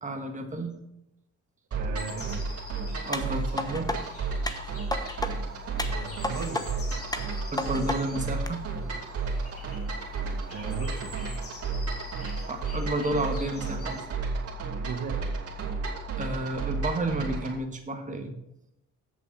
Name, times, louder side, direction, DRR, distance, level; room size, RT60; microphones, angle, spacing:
voice 1, 0.0-0.7 3.0-3.9 7.5-8.6 12.5-14.0 16.2-18.3, right 1 dB, 25° right, 3 dB, 1.7 m, -31 dB
sound 1, 1.7-17.6, right 4 dB, 50° right, 3.0 m, -33 dB
voice 2, 1.7-2.8 5.8-6.7 10.5-11.1 14.8-15.4, right 4 dB, 80° right, 2 dB, 1.8 m, -37 dB
sound 2, 2.0-14.0, left 3 dB, 50° left, 3.6 m, -47 dB
sound 3, 3.1-4.0 4.5-5.3 5.8-6.6 7.1-8.0 8.5-8.6, left 2 dB, 10° left, 1.1 m, -32 dB
8.4 x 7.0 x 6.2 m, 0.82 s
cardioid pair, 90°, 30 cm